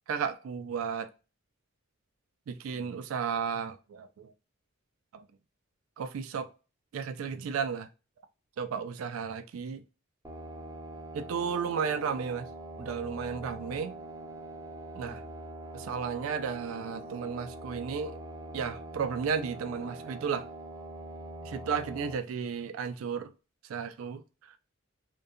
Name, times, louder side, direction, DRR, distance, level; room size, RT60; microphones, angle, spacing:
voice 1, 0.1-1.1 2.5-4.3 5.1-5.3 6.0-6.5 6.9-7.9 8.6-9.8 11.1-12.5 12.8-14.0 14.9-15.2 15.7-18.2 18.5-20.5 21.4-23.3 23.7-24.6, right 6 dB, 85° right, 0.3 m, -33 dB
sound 1, 10.2-22.1, right 1 dB, 15° right, 0.4 m, -43 dB
2.7 x 2.2 x 2.4 m
head